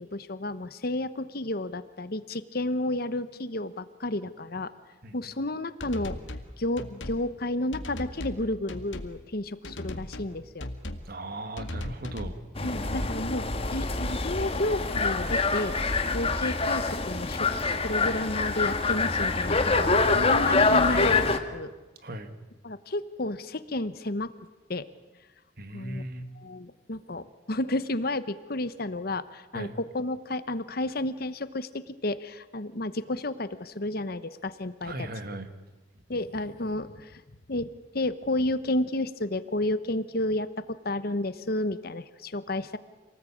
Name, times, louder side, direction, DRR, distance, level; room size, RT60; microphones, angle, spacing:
voice 1, 0.0-4.7 5.1-6.2 6.6-10.7 12.6-15.8 16.1-17.5 17.8-21.7 22.6-24.3 24.7-24.9 25.7-26.0 26.4-35.1 36.1-37.2 37.5-42.8, left 1 dB, 55° left, 13 dB, 1.1 m, -31 dB
voice 2, 5.0-5.3 11.1-13.1 22.0-22.3 25.6-26.2 29.5-29.7 34.8-35.5, right 1 dB, 50° right, 9 dB, 2.0 m, -38 dB
sound 1, 5.8-6.5 6.8-7.2 7.7-8.4 8.7-9.1 9.6-10.3 10.6-11.1 11.6-12.4, left 1 dB, 85° left, 2.0 m, -37 dB
sound 2, 12.5-21.4, left 3 dB, 30° left, 1.6 m, -25 dB
27.0 x 19.0 x 8.7 m, 1.2 s
head